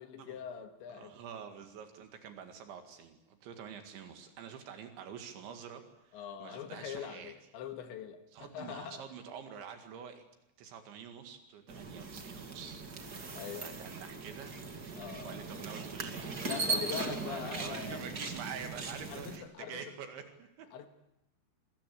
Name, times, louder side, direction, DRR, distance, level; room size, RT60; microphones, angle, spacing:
voice 1, 0.0-1.2 6.1-9.0 13.4-13.8 14.9-15.4 16.4-18.0 19.1-19.9 20.7-20.9, left 8 dB, 75° left, 7 dB, 4.0 m, -43 dB
voice 2, 0.9-7.3 8.3-10.2 10.6-14.6 15.3-16.4 16.6-20.7, right 7 dB, 75° right, 6 dB, 4.4 m, -47 dB
sound 1, 11.7-19.4, right 3 dB, 35° right, 1.8 m, -39 dB
27.0 x 22.5 x 8.6 m, 0.83 s
omnidirectional pair, 5.3 m